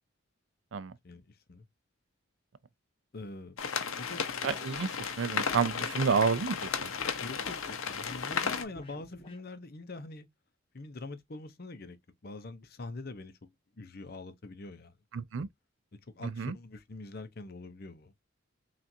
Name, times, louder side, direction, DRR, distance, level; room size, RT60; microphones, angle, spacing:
voice 1, 1.0-1.7 3.1-3.6 4.0-4.2 7.2-10.3 10.7-12.0 12.2-13.5 13.8-14.9 16.1-18.1, left 2 dB, 45° left, 0.6 m, -44 dB
sound 1, 3.6-8.6, left 6 dB, 75° left, 0.7 m, -34 dB
sound 2, 4.1-9.4, left 1 dB, 25° left, 1.0 m, -52 dB
voice 2, 4.4-6.9 15.1-15.5 16.2-16.5, right 5 dB, 65° right, 0.4 m, -30 dB
5.8 x 2.5 x 2.7 m
head